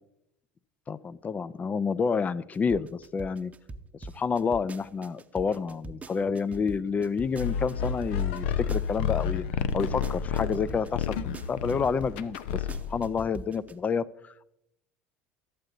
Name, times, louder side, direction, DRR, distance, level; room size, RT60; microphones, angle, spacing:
voice 1, 0.9-3.5 4.0-9.4 9.7-12.6 12.9-14.4, left 5 dB, 25° left, 19 dB, 0.4 m, -29 dB
sound 1, 2.5-9.2 9.7-13.7, right 3 dB, 25° right, 0.8 m, -43 dB
sound 2, 7.3-13.1, left 7 dB, 75° left, 0.6 m, -30 dB
13.0 x 8.1 x 3.9 m, 0.81 s
hypercardioid pair, 85°, 6 cm